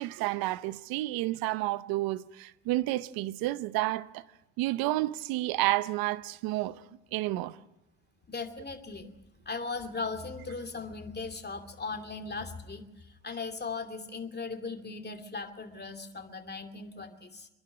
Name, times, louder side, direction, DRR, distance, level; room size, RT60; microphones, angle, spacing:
voice 1, 0.0-4.2 4.6-6.8 7.1-7.6, right 17 dB, 80° right, 0.7 m, -30 dB
voice 2, 8.3-9.1 9.5-17.5, left 4 dB, 30° left, 2.6 m, -38 dB
25.5 x 11.5 x 9.6 m
hypercardioid pair, 55°, 35 cm